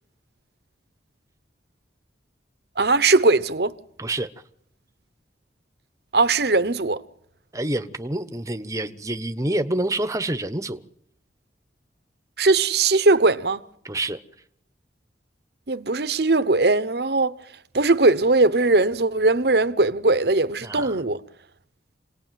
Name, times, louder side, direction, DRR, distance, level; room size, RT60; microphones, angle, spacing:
voice 1, 2.8-3.7 6.1-7.0 12.4-13.6 15.7-17.4 17.7-21.2, right 3 dB, 60° right, 1.0 m, -19 dB
voice 2, 7.5-10.8 13.8-14.2 20.6-21.0, right 1 dB, 15° right, 1.0 m, -27 dB
27.5 x 18.5 x 9.3 m
head